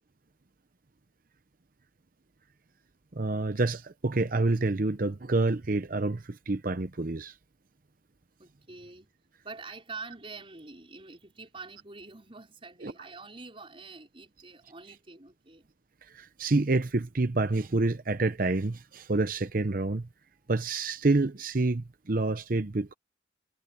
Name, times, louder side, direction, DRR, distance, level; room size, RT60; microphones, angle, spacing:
voice 1, 3.1-7.3 12.8-12.9 16.1-20.1 20.5-22.9, right 2 dB, 45° right, 0.7 m, -28 dB
voice 2, 8.4-9.1 9.4-15.7, right 3 dB, 30° right, 5.2 m, -46 dB
head